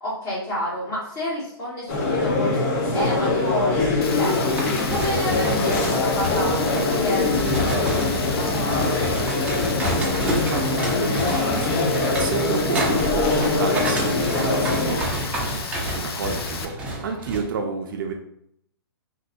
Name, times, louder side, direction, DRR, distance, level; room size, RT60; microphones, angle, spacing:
voice 1, 0.0-4.4 4.9-8.5, left 1 dB, 25° left, -7 dB, 1.5 m, -30 dB
sound 1, 1.9-15.0, left 3 dB, 40° left, 0.8 m, -23 dB
Rain, 4.0-16.6, left 5 dB, 70° left, 0.6 m, -34 dB
sound 2, 4.3-17.4, equal, 10° right, 0.6 m, -30 dB
voice 2, 9.8-18.1, right 5 dB, 55° right, 3 dB, 0.6 m, -31 dB
3.7 x 2.7 x 2.5 m, 0.71 s
hypercardioid pair, 140°, 14 cm